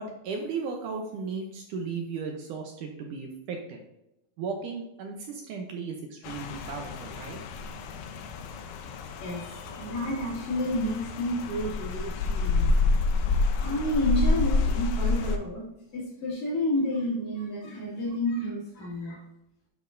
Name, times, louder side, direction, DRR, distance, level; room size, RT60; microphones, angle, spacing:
voice 1, 0.0-3.8 4.4-7.4, right 5 dB, 75° right, 2 dB, 2.1 m, -35 dB
Rain, 6.2-15.4, left 3 dB, 80° left, 1.7 m, -28 dB
voice 2, 9.2-12.8 13.6-15.7 15.9-19.2, left 1 dB, 55° left, -6 dB, 3.6 m, -30 dB
9.4 x 6.1 x 2.6 m, 0.87 s
omnidirectional pair, 4.1 m